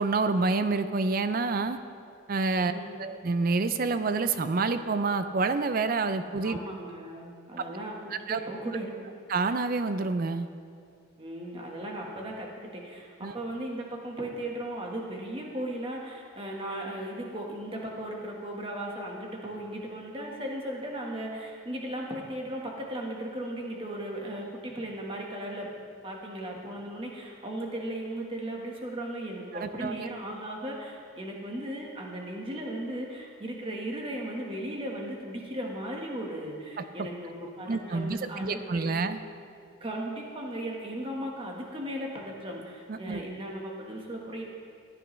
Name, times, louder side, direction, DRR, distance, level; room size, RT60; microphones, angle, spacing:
voice 1, 0.0-1.8 2.3-2.7 3.0-6.6 8.1-8.4 9.3-10.5 13.2-13.3 29.5-30.1 36.8-37.1 37.7-39.2 42.9-43.2, right 3 dB, 45° right, 10 dB, 0.4 m, -28 dB
voice 2, 2.6-3.0 6.4-9.1 11.2-25.7 26.0-39.0 39.8-44.5, right 1 dB, 25° right, -1 dB, 1.4 m, -37 dB
15.5 x 10.5 x 3.2 m, 2.3 s
head